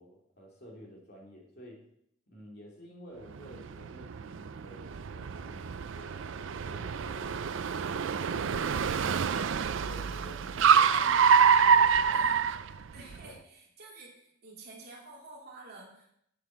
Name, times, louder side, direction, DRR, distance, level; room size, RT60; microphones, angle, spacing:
voice 1, 0.0-1.8 2.3-8.9 9.8-12.4 13.2-13.4, equal, 50° left, -2 dB, 3.0 m, -51 dB
Car, 3.4-13.2, right 6 dB, 65° right, 0.4 m, -26 dB
voice 2, 12.0-12.4 12.9-16.1, right 2 dB, 45° right, -2 dB, 2.8 m, -50 dB
8.2 x 7.7 x 7.0 m, 0.72 s
head